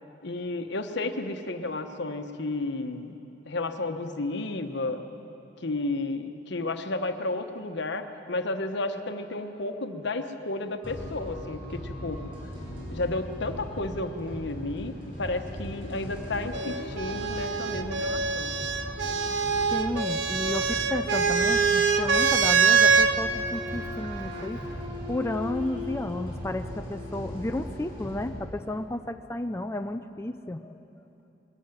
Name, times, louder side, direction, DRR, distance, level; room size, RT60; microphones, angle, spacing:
voice 1, 0.2-3.1 3.5-5.0 5.6-12.2 12.9-18.5, left 2 dB, 65° left, 7 dB, 1.1 m, -32 dB
sound 1, 10.8-28.3, left 1 dB, 30° right, 5.9 m, -38 dB
sound 2, 16.5-23.1 24.3-24.9, right 5 dB, 75° right, 1.0 m, -24 dB
voice 2, 19.7-24.6 25.1-30.8, left 1 dB, 15° left, 6 dB, 0.4 m, -32 dB
21.5 x 13.5 x 9.0 m, 3.0 s
head